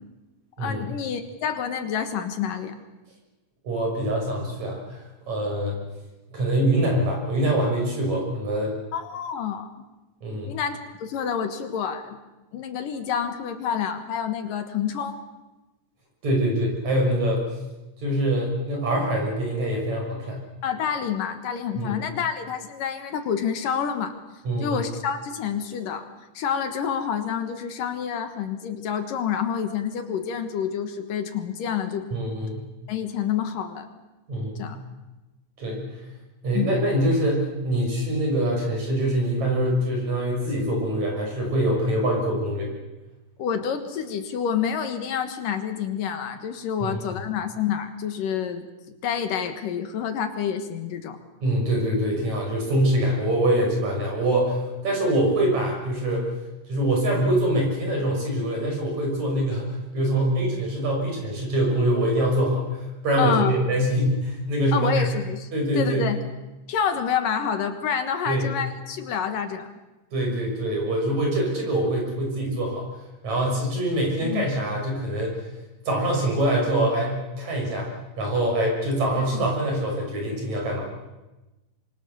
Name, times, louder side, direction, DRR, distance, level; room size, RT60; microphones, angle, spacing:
voice 1, 0.6-2.8 8.9-9.7 10.5-12.2 12.5-15.2 20.6-24.2 24.6-26.1 26.3-32.1 32.9-33.9 34.6-34.8 36.5-36.7 43.4-51.2 63.2-63.5 64.7-65.5 65.7-66.2 66.7-69.7 74.2-74.4, left 7 dB, 70° left, 8 dB, 3.0 m, -28 dB
voice 2, 3.6-5.0 5.3-5.8 6.3-8.8 10.2-10.5 16.2-17.4 18.0-20.4 21.8-22.0 24.4-24.8 32.1-32.6 34.3-34.7 35.6-35.9 36.4-42.7 46.8-46.9 51.4-56.3 56.7-65.1 65.5-66.0 68.3-68.5 70.1-72.9 73.2-75.4 75.9-80.9, right 1 dB, 50° right, 0 dB, 7.4 m, -24 dB
26.0 x 24.0 x 6.9 m, 1.1 s
omnidirectional pair, 4.2 m